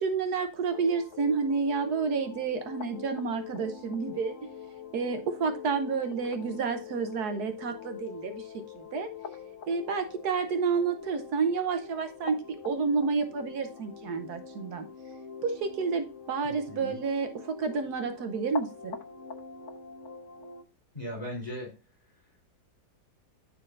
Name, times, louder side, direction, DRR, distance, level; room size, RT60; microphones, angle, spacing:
voice 1, 0.0-4.4 4.9-9.1 9.7-12.4 12.6-14.9 15.4-19.0, right 5 dB, 70° right, 7 dB, 1.3 m, -30 dB
sound 1, 0.7-20.6, left 6 dB, 50° left, 1.2 m, -44 dB
voice 2, 16.4-17.0 20.9-21.7, left 1 dB, 25° left, 0 dB, 3.8 m, -38 dB
13.5 x 4.5 x 2.5 m, 0.31 s
omnidirectional pair, 1.8 m